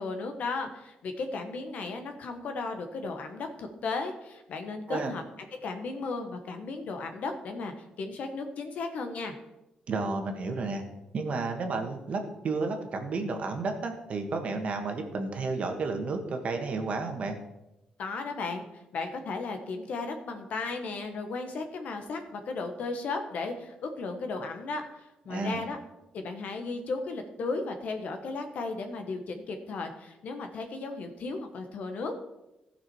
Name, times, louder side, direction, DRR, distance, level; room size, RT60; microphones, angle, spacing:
voice 1, 0.0-5.2 5.6-9.3 18.0-18.7 18.9-24.8 25.2-25.8 26.1-32.1, left 3 dB, 65° left, 6 dB, 1.3 m, -35 dB
voice 2, 9.9-10.8 11.1-17.3 25.3-25.6, right 3 dB, 50° right, 4 dB, 1.5 m, -32 dB
15.0 x 6.0 x 4.7 m, 0.96 s
cardioid pair, 125°, 3 cm